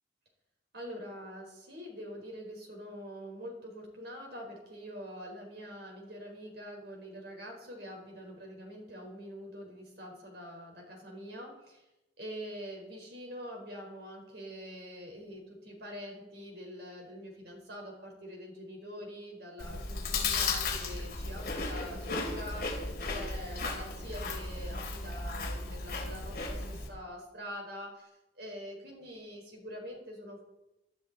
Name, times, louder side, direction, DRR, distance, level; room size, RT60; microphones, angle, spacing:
voice 1, 0.7-11.9 12.2-28.1 28.3-30.4, equal, 60° right, 0 dB, 4.6 m, -45 dB
Chewing mastication, 19.6-26.9, left 3 dB, 50° left, 3.1 m, -35 dB
18.0 x 12.0 x 4.2 m, 0.95 s
head